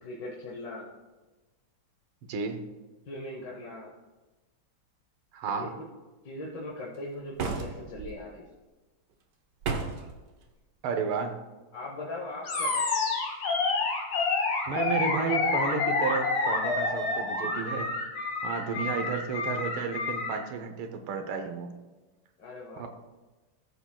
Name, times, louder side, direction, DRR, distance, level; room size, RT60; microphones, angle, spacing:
voice 1, 0.0-0.9 3.1-4.0 5.5-5.9 6.2-8.5 11.7-12.8 18.9-19.0 22.4-22.9, left 2 dB, 60° left, -3 dB, 1.8 m, -40 dB
voice 2, 2.3-2.6 5.3-5.7 10.8-11.4 14.7-17.9 18.4-21.7 22.8-22.9, right 5 dB, 90° right, 6 dB, 1.7 m, -32 dB
sound 1, 7.4-8.1 9.6-10.1, right 4 dB, 65° right, 1.4 m, -32 dB
Animal, 12.4-20.4, left 3 dB, 80° left, 2.4 m, -28 dB
14.5 x 7.0 x 2.3 m, 1.2 s
omnidirectional pair, 2.2 m